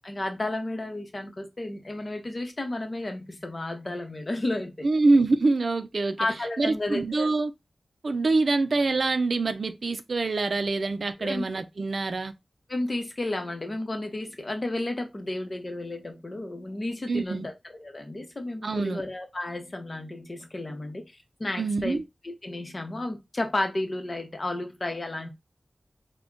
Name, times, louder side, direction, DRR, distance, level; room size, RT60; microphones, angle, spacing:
voice 1, 0.0-4.9 6.2-7.3 11.2-11.4 12.7-21.1 21.4-25.3, left 2 dB, 40° left, 0.9 m, -32 dB
voice 2, 4.8-6.2 6.6-7.5 8.0-12.3 17.1-17.5 18.6-19.0 21.6-22.0, right 3 dB, 70° right, 0.4 m, -25 dB
3.5 x 2.2 x 3.7 m
wide cardioid pair, 75°, 0 cm